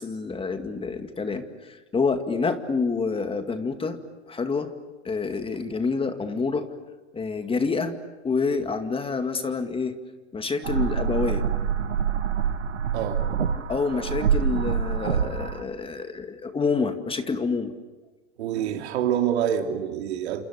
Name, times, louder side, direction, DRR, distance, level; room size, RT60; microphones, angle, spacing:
voice 1, 0.0-4.0 4.3-4.7 5.0-6.7 7.1-8.0 8.2-10.0 10.3-11.4 13.7-17.7, left 4 dB, 15° left, 8 dB, 2.1 m, -27 dB
sound 1, 10.6-15.6, right 7 dB, 85° right, 2.0 m, -26 dB
voice 2, 12.9-13.2 18.4-20.4, right 9 dB, 65° right, 5 dB, 3.2 m, -26 dB
29.0 x 27.5 x 6.8 m, 1.3 s
hypercardioid pair, 105°, 35 cm